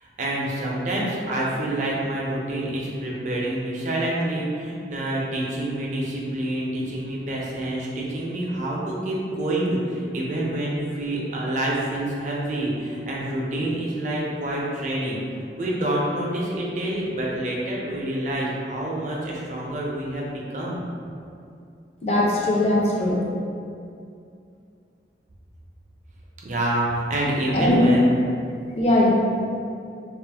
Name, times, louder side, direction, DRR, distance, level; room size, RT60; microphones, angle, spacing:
voice 1, 0.0-15.2 15.5-20.8 26.4-28.2, right 1 dB, 45° right, -4 dB, 0.4 m, -27 dB
voice 2, 22.0-23.2 27.5-27.9 28.8-29.1, left 1 dB, 35° left, -4 dB, 0.4 m, -20 dB
2.4 x 2.0 x 3.3 m, 2.5 s
head